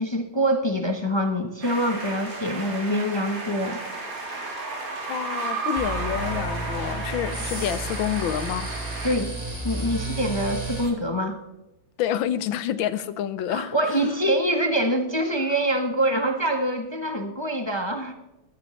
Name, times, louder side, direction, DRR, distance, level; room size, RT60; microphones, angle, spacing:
voice 1, 0.0-3.8 9.0-9.3 9.6-11.4 13.5-18.1, equal, 30° left, 0.5 m, -25 dB
sound 1, 1.6-9.2, right 3 dB, 45° right, 2.7 m, -33 dB
voice 2, 5.1-8.7 12.0-13.7, left 10 dB, 90° left, 1.5 m, -28 dB
sound 2, 5.8-10.9, right 2 dB, 20° right, 2.2 m, -32 dB
15.5 x 13.0 x 3.2 m
omnidirectional pair, 2.1 m